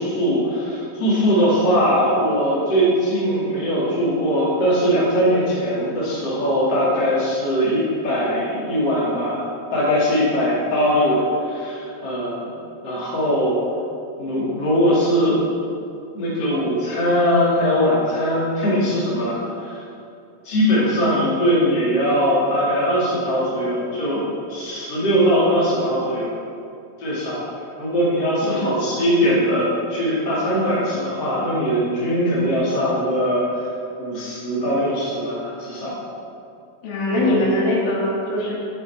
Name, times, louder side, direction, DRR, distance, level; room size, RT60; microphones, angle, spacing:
voice 1, 0.0-12.4 12.8-13.5 14.2-15.4 16.1-19.8 20.4-26.3 27.0-27.4 27.8-33.7 34.0-35.9 37.1-37.3, equal, 35° left, -7 dB, 1.8 m, -21 dB
voice 2, 36.8-38.5, left 1 dB, 85° left, -5 dB, 4.7 m, -22 dB
13.5 x 6.8 x 3.5 m, 2.6 s
omnidirectional pair, 5.6 m